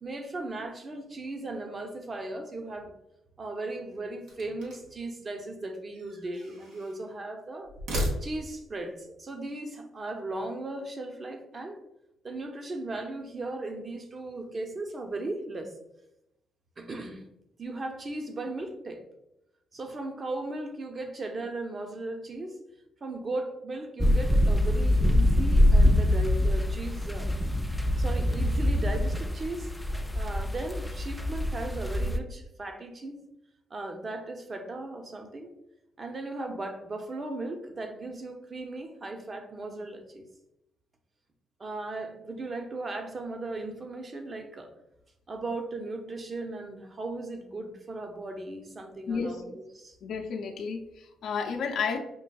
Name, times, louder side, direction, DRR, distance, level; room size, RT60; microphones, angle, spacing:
voice 1, 0.0-2.9 3.4-7.7 8.2-11.8 12.2-15.7 16.8-17.2 17.6-19.0 19.7-22.6 23.0-27.4 28.0-29.7 30.1-33.2 33.7-35.5 36.0-40.2 41.6-44.7 45.3-50.0, right 2 dB, 35° right, 5 dB, 0.6 m, -37 dB
apartment door open squeak slam, 4.3-5.0 5.9-7.0 7.7-8.7, equal, 90° right, 1.0 m, -35 dB
sound 1, 24.0-32.2, left 1 dB, 5° left, 0.3 m, -24 dB
voice 2, 49.1-49.4 50.0-52.0, left 5 dB, 70° left, 1 dB, 0.5 m, -32 dB
5.3 x 2.5 x 2.2 m, 0.87 s
cardioid pair, 90°, 0 cm